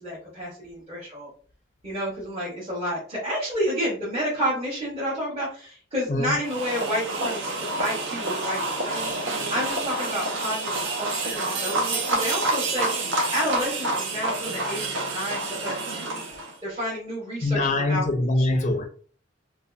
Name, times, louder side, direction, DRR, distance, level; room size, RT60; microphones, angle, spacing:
voice 1, 0.0-1.3 1.8-9.1 9.5-16.1 16.6-18.3, equal, 35° right, -8 dB, 0.9 m, -30 dB
sound 1, 6.4-16.5, right 2 dB, 80° right, 0.5 m, -28 dB
voice 2, 17.4-18.8, left 2 dB, 40° left, 5 dB, 0.4 m, -23 dB
2.6 x 2.2 x 2.3 m, 0.43 s
head